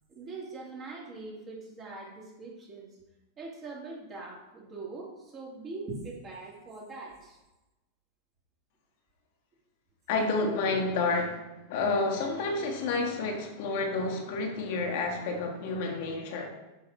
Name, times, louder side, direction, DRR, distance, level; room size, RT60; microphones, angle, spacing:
voice 1, 0.1-3.0 3.4-7.4, right 3 dB, 30° right, -3 dB, 2.8 m, -42 dB
voice 2, 10.1-16.5, left 3 dB, 50° left, 2 dB, 1.4 m, -30 dB
6.9 x 5.4 x 6.0 m, 1.0 s
figure-of-eight pair, 90°, 0 cm